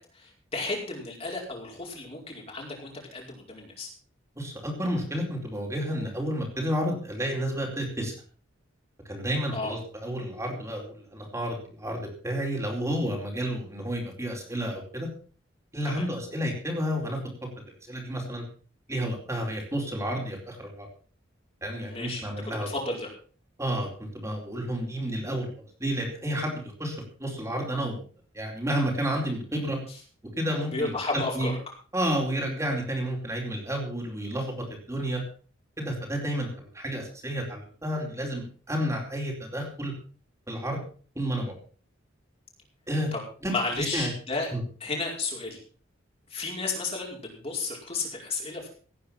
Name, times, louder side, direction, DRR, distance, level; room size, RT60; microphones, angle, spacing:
voice 1, 0.0-3.9 9.5-9.7 15.8-16.1 21.7-23.1 30.7-31.5 43.1-43.2 43.5-44.5 44.8-45.6 46.3-48.7, left 3 dB, 30° left, -1 dB, 5.0 m, -33 dB
voice 2, 4.4-8.1 9.0-15.1 15.7-17.2 17.9-18.4 18.9-20.9 21.6-22.7 23.6-25.5 25.8-28.0 28.3-29.8 30.4-31.0 31.3-31.5 31.9-35.2 35.8-39.9 40.5-40.8 41.1-41.5 42.9-43.1 43.4-43.5 43.8-44.1 44.5-44.6, equal, 15° right, 0 dB, 4.3 m, -31 dB
17.5 x 9.6 x 5.9 m, 0.41 s
head